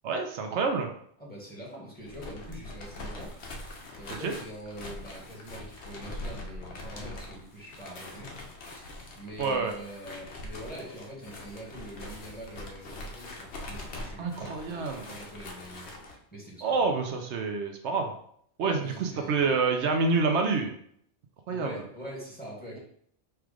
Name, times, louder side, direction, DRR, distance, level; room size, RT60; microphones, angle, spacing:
voice 1, 0.0-0.9 4.1-4.3 9.4-9.7 14.2-15.1 16.6-18.1 18.6-20.7 21.5-21.7, right 4 dB, 80° right, 4 dB, 0.9 m, -27 dB
voice 2, 1.2-3.3 3.9-15.9 16.3-16.9 18.6-19.5 21.5-22.8, equal, 10° left, -5 dB, 1.5 m, -44 dB
sound 1, 2.0-16.2, left 1 dB, 70° left, 1.1 m, -43 dB
4.5 x 2.4 x 4.8 m, 0.65 s
omnidirectional pair, 1.2 m